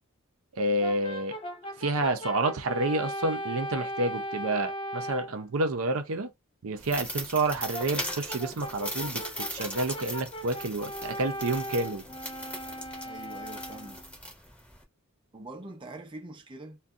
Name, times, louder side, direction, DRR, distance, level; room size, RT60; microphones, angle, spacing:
voice 1, 0.5-1.4 1.8-6.3 6.6-12.0, right 2 dB, 70° right, 0.6 m, -29 dB
Brass instrument, 0.8-5.4 7.7-14.1, equal, 25° left, 0.4 m, -38 dB
sound 1, 6.8-14.8, equal, 5° left, 0.8 m, -39 dB
voice 2, 13.0-14.0 15.3-16.8, right 2 dB, 20° right, 0.6 m, -44 dB
2.6 x 2.3 x 3.5 m
head